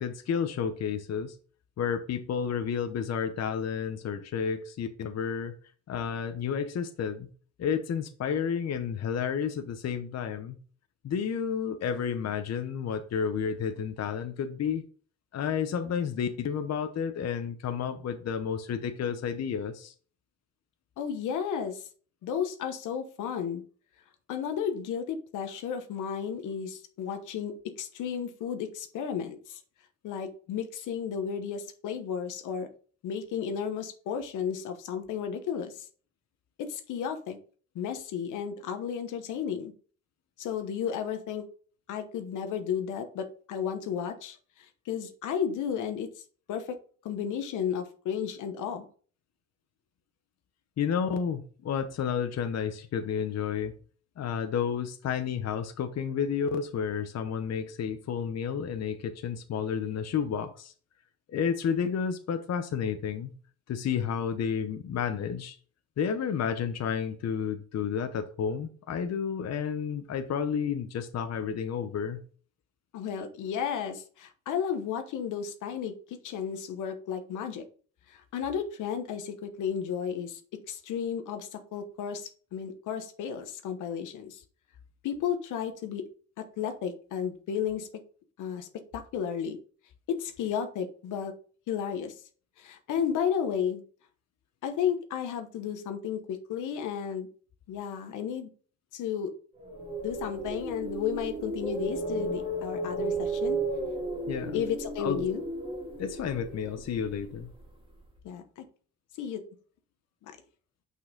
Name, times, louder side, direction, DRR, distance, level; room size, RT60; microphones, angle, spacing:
voice 1, 0.0-1.3 1.8-5.5 5.9-7.3 7.6-10.6 11.0-14.8 15.3-19.9 50.8-53.7 54.2-60.7 61.3-63.3 63.7-65.6 66.0-72.2 104.3-104.6 105.0-105.2 106.0-107.5, left 7 dB, 60° left, 8 dB, 0.9 m, -31 dB
voice 2, 21.0-21.9 22.2-23.6 24.3-29.6 30.0-32.7 33.0-35.9 36.6-37.4 37.7-39.7 40.4-41.4 41.9-46.1 46.5-46.8 47.0-48.8 72.9-77.6 78.1-80.4 80.7-84.4 85.0-86.0 86.4-87.9 88.4-89.6 90.1-91.3 91.7-92.1 92.6-93.8 94.6-97.3 97.7-98.5 98.9-99.3 100.0-103.6 104.5-105.4 108.2-108.6 109.2-109.4, left 8 dB, 85° left, 7 dB, 1.1 m, -33 dB
sound 1, 99.6-107.7, right 2 dB, 15° right, 2.2 m, -34 dB
6.3 x 5.6 x 3.8 m, 0.41 s
cardioid pair, 90°, 30 cm